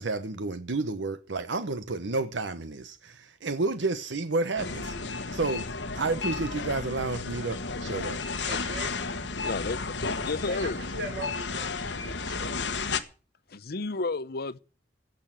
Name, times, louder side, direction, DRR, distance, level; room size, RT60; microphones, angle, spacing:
voice 1, 0.0-4.9 5.3-5.7 5.9-8.2, right 3 dB, 90° right, 1.0 m, -30 dB
sound 1, 4.6-13.0, left 4 dB, 80° left, 1.5 m, -33 dB
voice 2, 8.4-8.9 10.5-12.6, right 2 dB, 65° right, 4.2 m, -40 dB
voice 3, 9.4-10.8 13.5-14.6, left 3 dB, 60° left, 0.7 m, -32 dB
17.0 x 6.6 x 9.1 m
head